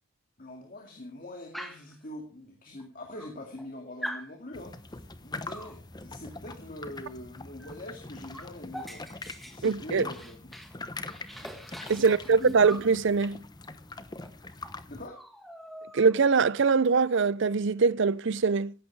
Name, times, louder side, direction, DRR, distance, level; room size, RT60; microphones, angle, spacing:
voice 1, 0.4-9.1 9.4-10.5 12.0-12.6 14.9-15.2, left 1 dB, 40° left, 2.3 m, -43 dB
Dog, 1.5-2.0 2.8-2.9 3.2-3.7 4.0-4.3 5.5-5.8 7.6-7.8 8.0-10.8 11.1-12.9 14.2-14.3 14.6-14.8 15.1-16.3, equal, ahead, 1.7 m, -43 dB
sound 1, 4.5-15.1, left 2 dB, 20° left, 1.0 m, -43 dB
voice 2, 9.6-10.0 11.9-13.4 15.9-18.7, right 5 dB, 60° right, 0.5 m, -23 dB
15.5 x 11.5 x 4.7 m
head